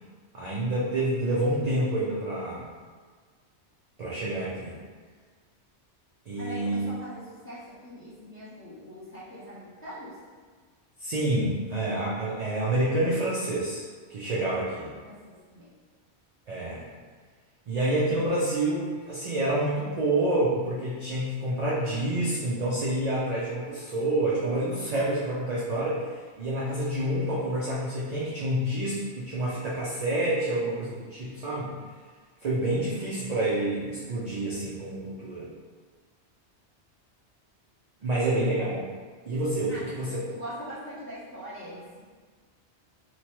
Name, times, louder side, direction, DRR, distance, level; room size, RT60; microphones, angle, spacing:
voice 1, 0.3-2.7 4.0-4.8 6.3-6.9 11.0-13.8 14.1-14.9 16.5-16.9 17.7-31.7 32.4-35.5 38.0-38.9 39.3-40.2, right 1 dB, 55° right, -7 dB, 0.4 m, -28 dB
voice 2, 6.3-10.1 14.2-15.7 39.7-42.0, equal, 15° left, -11 dB, 0.6 m, -42 dB
2.9 x 2.2 x 2.9 m, 1.5 s
omnidirectional pair, 1.1 m